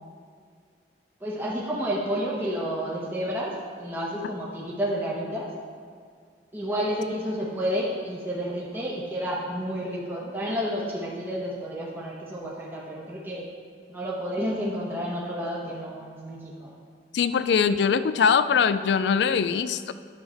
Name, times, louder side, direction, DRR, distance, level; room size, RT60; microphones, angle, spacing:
voice 1, 1.2-5.5 6.5-13.4 13.9-16.7, equal, 10° right, -5 dB, 1.0 m, -30 dB
voice 2, 17.1-19.9, left 6 dB, 65° left, 13 dB, 0.3 m, -22 dB
9.8 x 6.5 x 4.3 m, 2.1 s
head